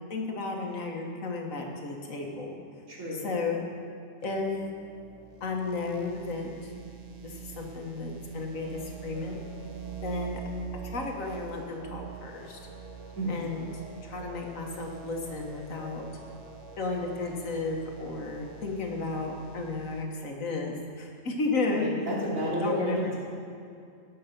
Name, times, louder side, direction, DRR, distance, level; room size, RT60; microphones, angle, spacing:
voice 1, 0.1-2.6 3.1-3.6 4.2-4.6 5.4-6.7 7.2-9.4 10.0-10.4 10.8-12.6 13.3-13.7 14.0-16.1 16.8-21.9 22.6-23.2, left 3 dB, 80° left, 1 dB, 1.8 m, -33 dB
voice 2, 2.9-3.2 13.2-13.4 21.7-23.2, equal, 85° right, -6 dB, 3.3 m, -31 dB
sound 1, 4.2-20.0, right 8 dB, 35° right, 0.8 m, -45 dB
sound 2, 8.5-18.6, right 1 dB, 65° right, 1.4 m, -49 dB
16.5 x 6.5 x 5.9 m, 2.4 s
omnidirectional pair, 1.4 m